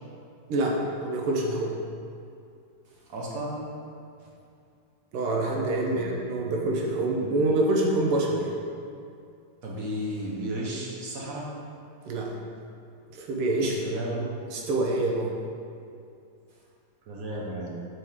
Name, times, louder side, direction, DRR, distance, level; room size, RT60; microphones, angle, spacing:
voice 1, 0.5-1.7 5.1-8.5 12.1-12.3 13.1-15.3, right 2 dB, 85° right, -1 dB, 1.8 m, -26 dB
voice 2, 3.1-3.6 4.2-4.3 5.9-6.1 9.6-11.5 13.6-14.2 17.1-17.8, right 1 dB, 50° right, -4 dB, 1.1 m, -34 dB
6.4 x 4.6 x 3.6 m, 2.5 s
omnidirectional pair, 2.4 m